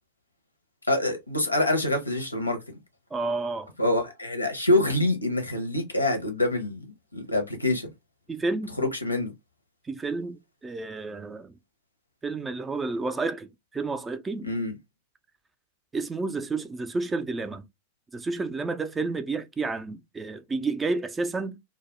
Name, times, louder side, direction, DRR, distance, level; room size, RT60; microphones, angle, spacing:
voice 1, 0.9-2.6 3.8-7.9 8.8-9.3 14.4-14.7, left 1 dB, 90° left, 0.6 m, -26 dB
voice 2, 3.1-3.7 8.3-8.8 9.8-11.6 12.2-14.5 15.9-17.6 18.1-21.6, right 3 dB, 15° right, 0.3 m, -30 dB
2.2 x 2.0 x 2.9 m
figure-of-eight pair, 95°, 0 cm